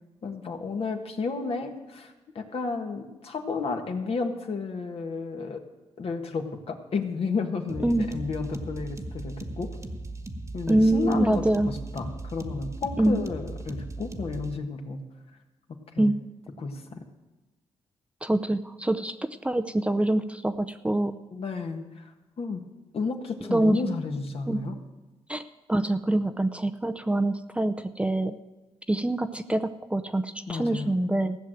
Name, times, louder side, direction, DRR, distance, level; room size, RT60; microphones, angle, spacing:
voice 1, 0.2-5.6 6.0-9.8 10.5-15.0 15.9-16.1 16.6-17.0 21.3-22.1 22.4-22.6 22.9-24.8 30.5-30.9, left 4 dB, 55° left, 4 dB, 1.6 m, -32 dB
sound 1, 7.7-14.5, right 2 dB, 25° right, 1.4 m, -38 dB
voice 2, 10.7-11.7 13.0-13.2 16.0-16.1 18.2-19.2 19.4-21.2 23.4-23.9 24.5-24.6 25.3-25.4 25.7-28.3 28.9-31.4, right 1 dB, 10° right, 9 dB, 0.6 m, -25 dB
15.0 x 6.4 x 9.0 m, 1.1 s
cardioid pair, 85°, 12 cm